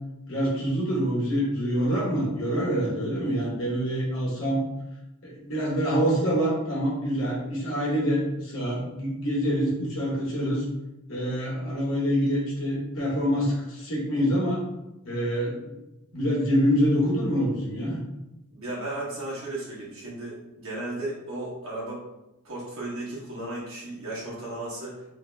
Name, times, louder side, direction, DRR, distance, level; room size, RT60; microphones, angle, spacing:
voice 1, 0.3-4.6 5.2-10.6 11.1-14.6 15.0-15.8 16.1-18.0, equal, 60° left, -5 dB, 1.2 m, -26 dB
voice 2, 18.5-22.0 22.4-25.0, right 2 dB, 65° right, -6 dB, 1.3 m, -35 dB
3.2 x 2.2 x 3.3 m, 0.94 s
head